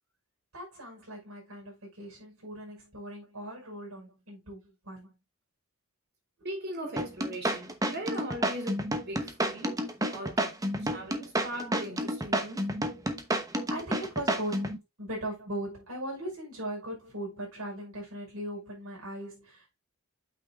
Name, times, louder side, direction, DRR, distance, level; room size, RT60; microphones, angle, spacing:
voice 1, 0.5-5.1 6.4-6.5 13.7-14.7 15.0-19.6, right 1 dB, 80° right, 5.8 m, -39 dB
voice 2, 6.4-9.8 10.1-10.5 10.8-12.6, right 1 dB, 50° right, 3.0 m, -39 dB
sound 1, 7.0-14.8, right 1 dB, 15° right, 0.9 m, -30 dB
8.8 x 6.1 x 2.5 m
head